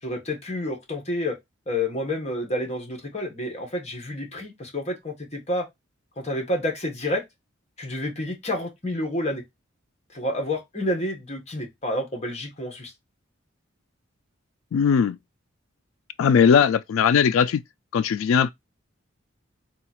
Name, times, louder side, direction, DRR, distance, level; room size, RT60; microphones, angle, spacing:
voice 1, 0.0-1.4 1.7-5.7 6.2-7.2 7.8-9.4 10.1-12.9, left 1 dB, 30° left, 1.2 m, -29 dB
voice 2, 14.7-15.2 16.2-17.6 17.9-18.5, left 7 dB, 90° left, 0.3 m, -19 dB
3.8 x 2.4 x 4.3 m
head